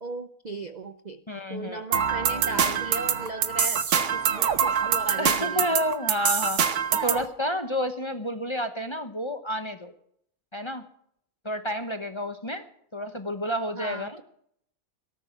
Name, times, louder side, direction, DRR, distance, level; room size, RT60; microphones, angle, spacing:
voice 1, 0.0-1.2 1.5-5.7 13.7-14.2, right 2 dB, 40° right, 9 dB, 0.7 m, -36 dB
voice 2, 1.3-1.8 5.2-6.6 7.0-9.9 10.5-10.8 11.4-12.6 12.9-14.2, equal, 20° left, 8 dB, 1.0 m, -30 dB
sound 1, 1.9-7.3, right 7 dB, 60° right, 1.3 m, -25 dB
18.0 x 13.5 x 4.7 m, 0.70 s
omnidirectional pair, 1.5 m